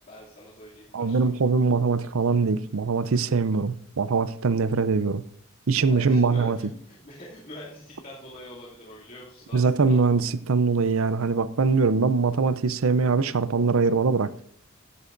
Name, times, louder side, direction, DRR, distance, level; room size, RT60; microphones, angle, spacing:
voice 1, 0.1-1.2 5.8-9.9, left 1 dB, 40° left, 2.7 m, -44 dB
voice 2, 0.9-5.2 5.7-6.6 9.5-14.3, right 4 dB, 75° right, 0.6 m, -22 dB
15.5 x 11.0 x 2.6 m
head